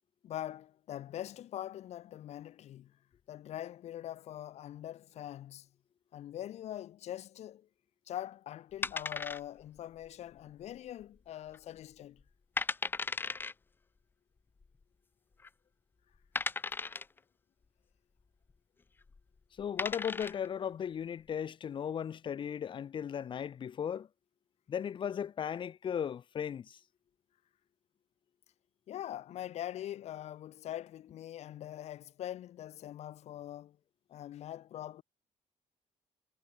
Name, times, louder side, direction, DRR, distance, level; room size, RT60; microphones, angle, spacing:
voice 1, 0.2-2.9 3.3-5.7 6.1-7.7 8.1-12.2 28.9-33.8 34.1-35.0, left 12 dB, 70° left, 6.5 m, -43 dB
sound 1, 8.8-9.8 10.0-10.1 10.8-11.2 11.5-11.6 12.2-12.3 12.6-13.5 14.6-14.7 15.4-15.5 16.4-17.2 19.0-19.2 19.6-20.5, left 4 dB, 20° left, 0.5 m, -36 dB
voice 2, 19.6-24.1 24.7-26.8, left 8 dB, 45° left, 2.3 m, -36 dB
cardioid pair, 145°, 12 cm